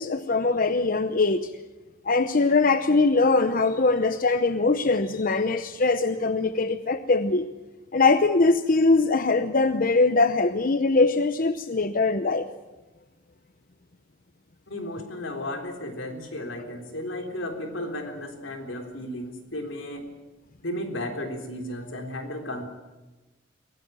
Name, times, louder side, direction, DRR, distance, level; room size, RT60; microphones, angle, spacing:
voice 1, 0.0-1.5 2.0-7.5 7.9-12.5, left 3 dB, 45° left, 10 dB, 0.8 m, -22 dB
voice 2, 14.7-20.0 20.6-22.6, left 1 dB, 80° left, 5 dB, 3.8 m, -34 dB
23.0 x 17.5 x 9.2 m, 1.1 s
head